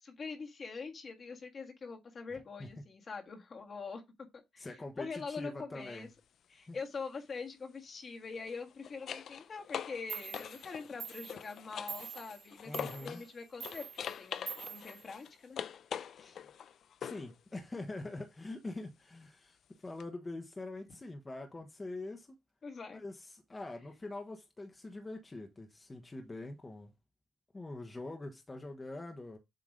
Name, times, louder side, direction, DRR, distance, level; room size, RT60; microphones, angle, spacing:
voice 1, 0.0-4.0 4.3-4.7 5.0-6.1 6.5-15.6 16.1-16.4 22.6-23.0, left 4 dB, 50° left, 1.6 m, -44 dB
voice 2, 2.3-2.7 4.6-6.1 6.7-6.8 12.6-13.2 17.0-22.3 22.9-26.9 27.5-29.4, left 2 dB, 25° left, 1.1 m, -44 dB
sound 1, 5.8-6.0 8.3-13.3 13.6-17.3 20.0-20.1, left 8 dB, 65° left, 0.5 m, -44 dB
Clock, 9.8-9.9 10.1-15.7, right 7 dB, 70° right, 2.0 m, -47 dB
7.7 x 2.9 x 5.0 m
supercardioid pair, 65°, 0 cm